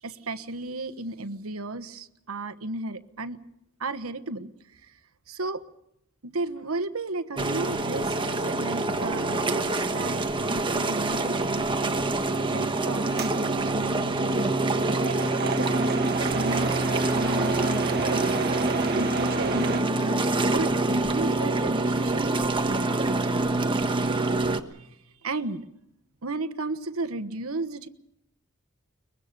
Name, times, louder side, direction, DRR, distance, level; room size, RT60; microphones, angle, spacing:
voice 1, 0.0-3.4 3.8-5.0 5.3-5.6 6.2-10.2 10.5-12.0 12.5-18.3 18.9-23.8 24.7-25.0 25.2-25.6 26.2-27.9, right 2 dB, 75° right, 10 dB, 1.3 m, -34 dB
sound 1, 7.4-24.6, right 2 dB, 25° right, 1.3 m, -26 dB
sound 2, 13.2-19.8, right 5 dB, 50° right, 1.1 m, -33 dB
23.0 x 22.0 x 6.8 m, 0.78 s
head